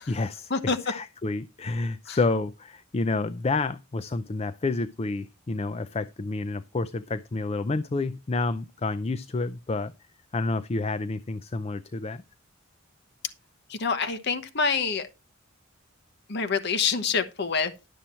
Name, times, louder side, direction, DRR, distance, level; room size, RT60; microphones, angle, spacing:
voice 1, 0.1-0.5 0.8-9.9 10.3-12.2, left 3 dB, 30° left, 0.4 m, -29 dB
voice 2, 13.7-15.1 16.3-17.7, left 5 dB, 55° left, 1.1 m, -26 dB
11.5 x 7.4 x 4.4 m
head